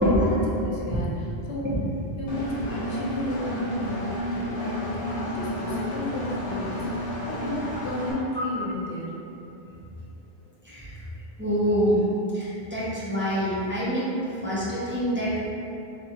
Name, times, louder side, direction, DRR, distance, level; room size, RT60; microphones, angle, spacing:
voice 1, 0.0-1.7 2.2-4.8 5.1-9.1, left 1 dB, 80° left, -4 dB, 0.9 m, -33 dB
voice 2, 0.6-1.0 1.6-1.7 8.3-8.6 10.6-11.0 11.4-12.0 12.3-14.1 14.4-15.5, equal, 15° right, -10 dB, 0.4 m, -26 dB
Engine, 2.3-8.1, left 1 dB, 50° left, 0.5 m, -31 dB
3.6 x 2.2 x 2.8 m, 2.8 s
omnidirectional pair, 1.0 m